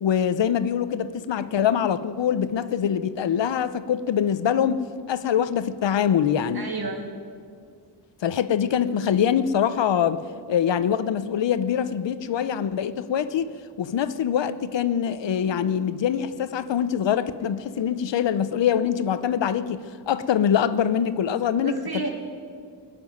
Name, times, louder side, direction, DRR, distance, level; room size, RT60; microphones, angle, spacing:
voice 1, 0.0-6.7 8.2-10.2 10.5-13.5 13.8-22.0, left 8 dB, 85° left, 14 dB, 0.8 m, -24 dB
voice 2, 6.5-7.1 21.6-22.1, right 3 dB, 60° right, 2 dB, 2.6 m, -31 dB
19.5 x 7.0 x 9.3 m, 2.1 s
wide cardioid pair, 100°, 43 cm